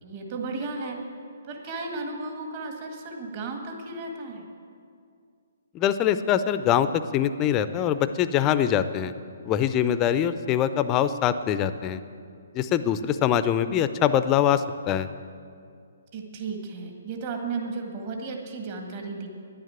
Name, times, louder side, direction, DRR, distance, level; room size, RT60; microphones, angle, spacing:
voice 1, 0.0-1.0 1.4-4.4 16.1-19.3, right 3 dB, 40° right, 2 dB, 1.9 m, -34 dB
voice 2, 5.7-9.1 9.4-12.0 12.5-15.1, left 9 dB, 25° left, 12 dB, 0.5 m, -23 dB
10.5 x 9.3 x 8.9 m, 2.3 s
hypercardioid pair, 135°, 0 cm